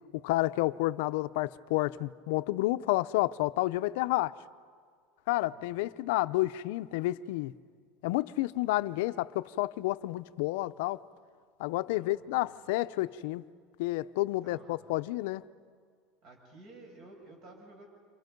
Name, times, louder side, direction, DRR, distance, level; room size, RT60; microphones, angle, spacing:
voice 1, 0.1-4.4 5.3-7.5 8.0-11.0 11.6-13.4 13.8-15.4, left 18 dB, 75° left, 0.6 m, -30 dB
voice 2, 11.7-12.5 14.4-14.8 16.2-17.9, right 2 dB, 50° right, 7.2 m, -53 dB
29.5 x 26.5 x 5.3 m
supercardioid pair, 135°, 0 cm